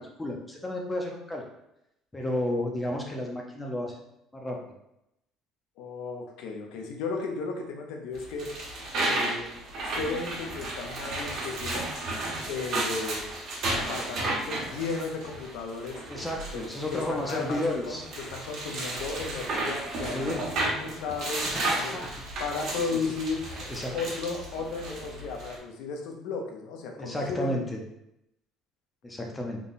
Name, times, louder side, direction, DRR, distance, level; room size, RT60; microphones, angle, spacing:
voice 1, 0.0-1.4 2.1-3.9 4.3-4.6 16.1-18.0 20.1-20.4 21.5-22.1 23.7-23.9 27.0-27.8 29.0-29.6, left 1 dB, 15° left, 0 dB, 0.6 m, -32 dB
voice 2, 5.8-8.6 9.0-9.5 9.8-11.9 12.5-13.3 13.7-16.0 16.5-22.0 22.4-23.5 23.9-27.6 29.5-29.6, left 4 dB, 80° left, 3 dB, 0.7 m, -35 dB
sound 1, 8.1-25.6, right 2 dB, 55° right, 1.2 m, -33 dB
3.6 x 2.2 x 4.0 m, 0.83 s
cardioid pair, 135°, 0 cm